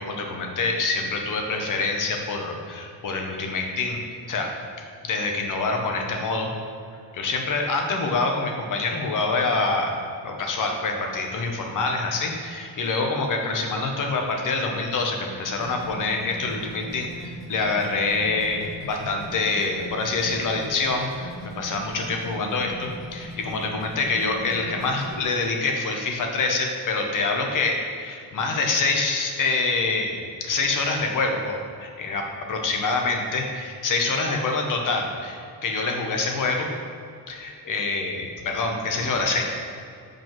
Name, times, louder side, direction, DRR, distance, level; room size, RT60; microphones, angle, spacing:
voice 1, 0.0-4.0 4.3-4.5 5.0-6.5 7.1-36.7 37.3-39.4, left 3 dB, 50° left, 3 dB, 1.0 m, -26 dB
sound 1, 15.6-25.2, right 1 dB, ahead, 1.2 m, -40 dB
7.7 x 5.1 x 4.5 m, 2.4 s
wide cardioid pair, 180°, 40 cm